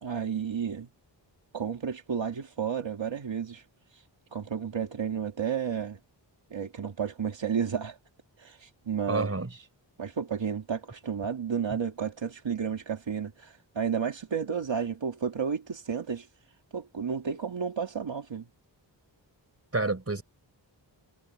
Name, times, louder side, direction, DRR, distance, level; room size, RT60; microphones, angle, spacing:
voice 1, 0.0-0.9 1.5-3.6 4.3-6.0 6.5-8.0 8.4-9.6 10.0-16.3 16.7-18.5, right 7 dB, 75° right, 2.3 m, -32 dB
voice 2, 9.1-9.5 19.7-20.2, right 3 dB, 30° right, 4.7 m, -28 dB
wide cardioid pair, 95°, 45 cm